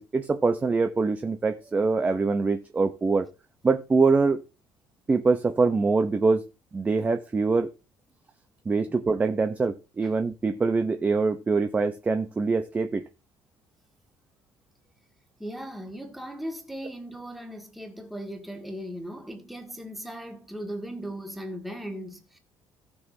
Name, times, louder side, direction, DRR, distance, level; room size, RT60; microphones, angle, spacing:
voice 1, 0.0-3.3 3.6-4.4 5.1-6.4 6.7-7.7 8.7-13.0, right 4 dB, 20° right, 0.6 m, -24 dB
voice 2, 15.4-22.4, equal, ahead, 1.8 m, -38 dB
17.5 x 5.9 x 2.7 m
cardioid pair, 130°, 8 cm